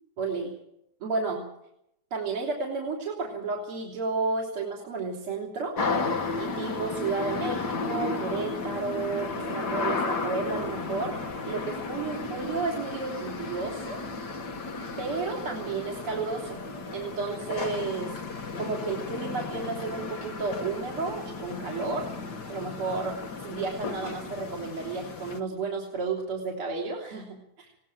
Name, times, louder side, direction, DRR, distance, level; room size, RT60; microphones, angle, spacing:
voice 1, 0.2-0.5 1.0-1.4 2.1-5.8 6.4-11.1 11.5-14.0 15.0-16.7 16.9-18.1 18.6-22.1 22.5-27.7, right 4 dB, 45° right, -2 dB, 4.1 m, -32 dB
sound 1, 5.8-25.4, left 3 dB, 40° left, 1.7 m, -34 dB
20.5 x 18.5 x 7.6 m, 0.79 s
omnidirectional pair, 3.4 m